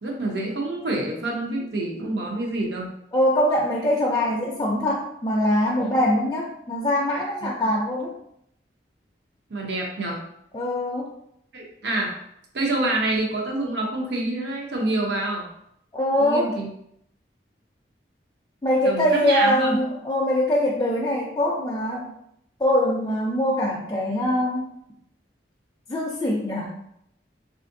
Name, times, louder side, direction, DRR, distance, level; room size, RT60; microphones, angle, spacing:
voice 1, 0.0-2.9 5.8-5.9 7.4-7.7 9.5-10.2 11.5-12.2 12.5-15.5 16.2-16.7 18.8-19.8, right 2 dB, 65° right, 0 dB, 0.7 m, -27 dB
voice 2, 3.1-8.1 10.5-11.1 15.9-16.5 18.6-22.1 22.6-24.6 25.9-26.7, left 1 dB, 20° left, -3 dB, 0.4 m, -23 dB
3.4 x 2.4 x 2.6 m, 0.75 s
head